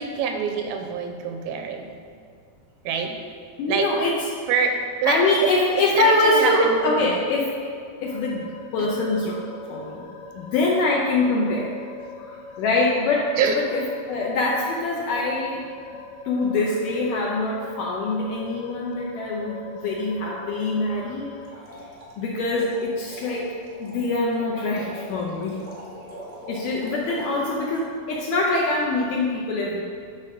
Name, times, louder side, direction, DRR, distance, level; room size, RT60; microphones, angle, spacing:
voice 1, 0.0-1.9 2.9-3.2 3.7-3.9 4.5-5.5 5.9-7.2 8.8-8.9 13.4-13.6, right 6 dB, 85° right, 4 dB, 2.4 m, -25 dB
voice 2, 3.6-4.8 5.0-7.5 8.0-8.5 8.7-10.1 10.3-11.7 12.6-15.6 16.3-19.6 19.8-21.3 22.2-23.5 23.8-25.6 26.5-29.8, left 2 dB, 75° left, -3 dB, 2.1 m, -24 dB
sound 1, 8.0-21.5, left 2 dB, 55° left, 1.8 m, -42 dB
sound 2, 21.4-27.3, right 1 dB, 10° right, 0.7 m, -42 dB
9.8 x 4.1 x 6.2 m, 2.2 s
omnidirectional pair, 4.4 m